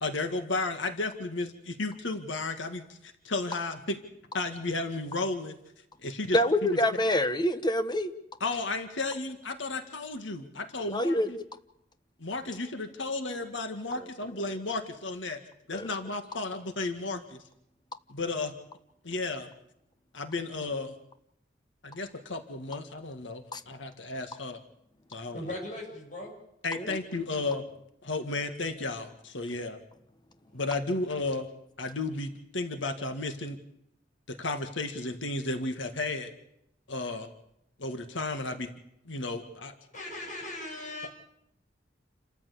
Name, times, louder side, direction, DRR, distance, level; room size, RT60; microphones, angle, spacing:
voice 1, 0.0-4.0 4.3-5.5 6.0-6.8 8.4-11.4 12.2-15.4 15.7-17.4 18.1-18.5 19.0-19.5 20.1-20.9 21.8-24.6 25.1-25.4 26.6-27.7 28.0-29.8 30.5-31.5 31.8-33.6 34.3-36.3 36.9-37.3 37.8-38.7 39.1-39.7, left 2 dB, 80° left, 7 dB, 2.0 m, -33 dB
voice 2, 6.3-8.1 10.9-11.3 14.0-14.1 15.7-15.9 23.5-23.6 26.8-27.0, left 1 dB, 25° left, 10 dB, 1.2 m, -26 dB
voice 3, 25.3-26.3 30.5-30.6 39.9-41.1, left 1 dB, 45° left, 0 dB, 7.1 m, -38 dB
29.0 x 14.0 x 8.6 m, 0.80 s
head